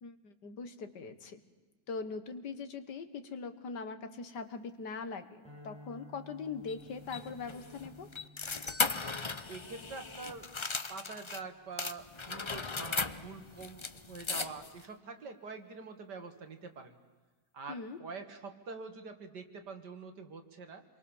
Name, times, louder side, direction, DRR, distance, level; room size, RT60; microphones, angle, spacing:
voice 1, 0.0-1.4 1.9-8.1 17.7-18.0, left 4 dB, 85° left, 10 dB, 2.1 m, -41 dB
sound 1, 5.4-11.8, equal, 5° left, 5.7 m, -56 dB
sound 2, 6.7-11.4 11.8-14.9, left 4 dB, 35° left, 0.4 m, -37 dB
voice 2, 9.5-10.5 10.9-17.0 17.5-20.8, right 4 dB, 85° right, 6 dB, 2.7 m, -45 dB
28.0 x 22.5 x 7.3 m, 1.3 s
omnidirectional pair, 1.8 m